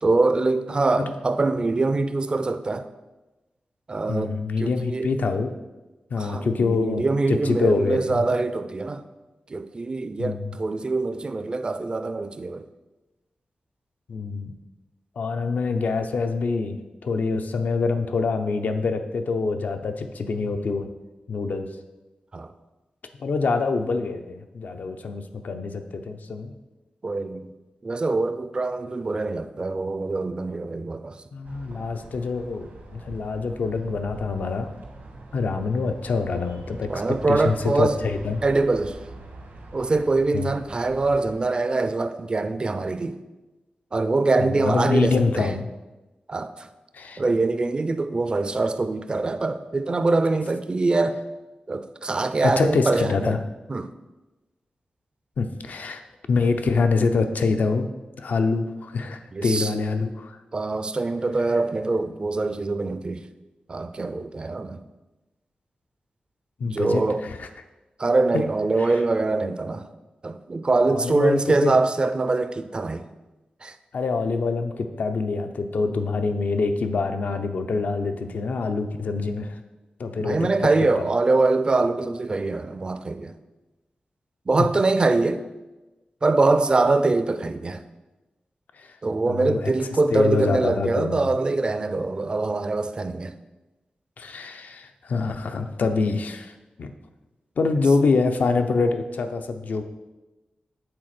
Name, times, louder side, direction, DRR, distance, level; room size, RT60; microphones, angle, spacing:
voice 1, 0.0-2.9 3.9-5.1 6.2-9.0 9.5-12.6 22.3-22.5 27.0-27.5 27.8-31.2 36.9-37.9 38.4-39.0 39.7-43.2 43.9-45.5 46.3-46.7 47.2-51.2 51.7-53.4 53.7-53.9 59.3-59.7 60.5-63.2 63.7-64.8 66.6-67.2 68.0-69.9 70.2-73.0 73.6-73.7 80.2-83.3 84.5-85.4 86.2-87.8 89.0-93.3, right 3 dB, 35° right, 0.4 m, -24 dB
voice 2, 4.1-5.5 6.1-8.2 10.2-10.6 14.1-14.6 15.2-16.8 17.0-20.9 21.3-21.7 23.2-26.5 31.3-32.7 32.9-34.7 35.3-38.4 40.3-40.5 44.4-45.7 46.9-47.2 52.4-53.4 55.4-56.0 56.3-57.9 58.2-60.4 66.6-67.5 68.8-68.9 70.9-71.8 73.9-79.6 80.0-80.5 81.0-81.1 88.8-89.0 89.3-89.7 90.1-91.2 94.2-96.9 97.6-99.8, left 4 dB, 75° left, 0.6 m, -25 dB
sound 1, 31.4-41.4, right 2 dB, 90° right, 1.6 m, -44 dB
7.6 x 4.0 x 5.9 m
wide cardioid pair, 110°, 3 cm